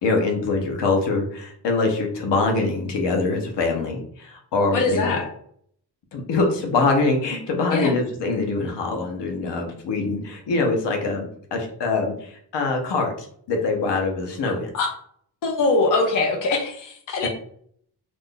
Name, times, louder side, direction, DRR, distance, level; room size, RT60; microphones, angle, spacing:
voice 1, 0.0-5.2 6.1-14.7 17.2-17.3, left 3 dB, 80° left, 2 dB, 0.9 m, -24 dB
voice 2, 4.7-5.2 7.7-7.9 14.7-14.9 15.4-17.3, left 3 dB, 50° left, 1 dB, 0.6 m, -22 dB
2.5 x 2.5 x 3.6 m, 0.63 s
wide cardioid pair, 160°, 41 cm